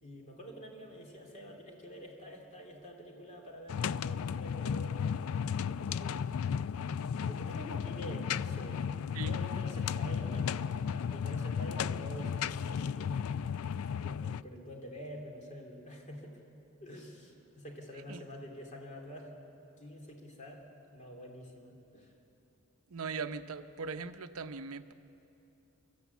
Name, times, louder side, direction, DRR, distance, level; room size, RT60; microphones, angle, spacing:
voice 1, 0.0-5.1 5.6-6.3 7.2-8.9 9.2-10.6 10.9-13.1 14.0-16.4 16.8-19.4 19.8-20.6 20.9-22.1, equal, 35° left, 0 dB, 2.9 m, -47 dB
sound 1, 3.7-14.4, left 7 dB, 70° left, 0.4 m, -34 dB
voice 2, 22.9-24.9, right 4 dB, 70° right, 10 dB, 0.7 m, -39 dB
24.5 x 14.0 x 8.2 m, 3.0 s
head